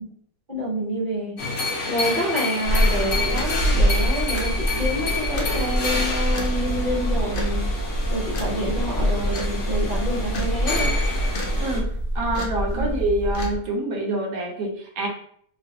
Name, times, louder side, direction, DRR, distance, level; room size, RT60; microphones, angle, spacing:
voice 1, 0.5-1.4 1.9-7.7 8.1-11.0 12.7-12.9, equal, 40° right, -7 dB, 0.7 m, -28 dB
sound 1, 1.4-11.8, left 3 dB, 55° left, 0.9 m, -29 dB
sound 2, 2.6-13.5, right 1 dB, 85° left, 0.4 m, -25 dB
voice 2, 11.6-11.9 12.1-15.1, right 1 dB, 65° right, 0 dB, 1.1 m, -26 dB
3.1 x 2.4 x 2.8 m, 0.63 s
omnidirectional pair, 1.7 m